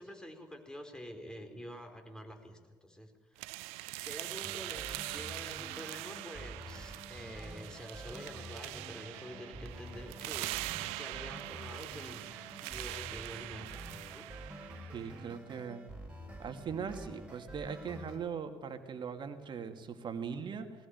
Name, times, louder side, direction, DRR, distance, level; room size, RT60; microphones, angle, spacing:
voice 1, 0.0-3.6 4.0-10.5 10.9-12.2 12.6-13.7 14.1-14.3, equal, 5° left, 5 dB, 4.6 m, -48 dB
sound 1, 3.4-15.3, right 20 dB, 70° right, 0.6 m, -43 dB
sound 2, 4.4-18.2, right 1 dB, 10° right, 5.8 m, -48 dB
voice 2, 14.9-15.8 16.4-20.9, right 6 dB, 45° right, 7 dB, 2.6 m, -40 dB
20.0 x 18.5 x 9.7 m, 1.4 s
hypercardioid pair, 55°, 11 cm